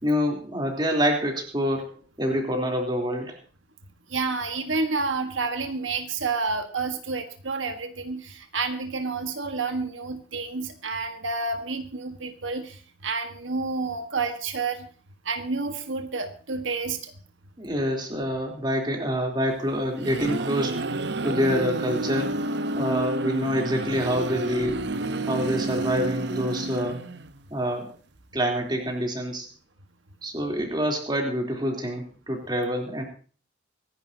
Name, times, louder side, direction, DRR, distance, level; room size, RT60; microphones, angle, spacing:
voice 1, 0.0-3.4 17.6-20.8 21.2-24.9 25.3-27.0 27.5-27.9 28.3-29.5 30.2-33.0, equal, 25° right, 1 dB, 3.4 m, -26 dB
voice 2, 4.1-14.9 15.2-17.1, right 4 dB, 85° right, 6 dB, 1.6 m, -29 dB
sound 1, 19.7-27.4, right 2 dB, 60° right, 0.8 m, -30 dB
25.0 x 11.0 x 2.9 m, 0.41 s
head